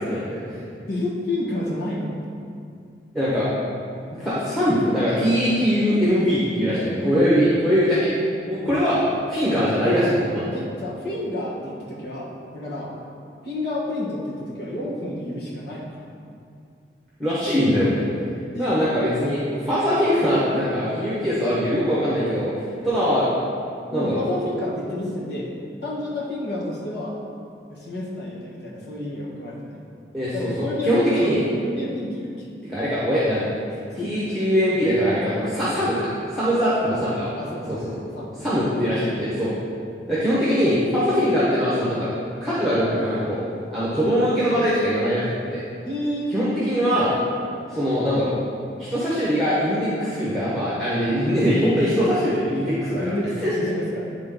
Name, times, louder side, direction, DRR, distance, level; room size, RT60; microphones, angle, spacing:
voice 1, 0.1-0.6 3.1-3.5 4.2-8.1 8.5-9.0 9.3-10.5 17.2-18.0 18.6-23.3 23.9-24.2 30.1-31.4 32.7-33.5 33.9-37.3 38.4-39.5 40.1-42.1 42.4-43.4 43.7-45.6 46.3-47.1 47.7-48.4 48.8-53.1 53.4-53.5, equal, ahead, -10 dB, 1.1 m, -22 dB
voice 2, 0.9-2.1 7.0-7.5 8.6-8.8 10.5-12.9 13.4-16.0 18.5-18.8 23.9-25.5 25.8-27.2 27.7-29.8 30.3-31.3 31.6-32.5 33.9-34.5 36.4-36.6 37.3-38.4 39.2-39.4 45.8-46.3 52.9-54.2, left 1 dB, 65° left, -5 dB, 1.4 m, -30 dB
9.6 x 3.8 x 3.8 m, 2.4 s
head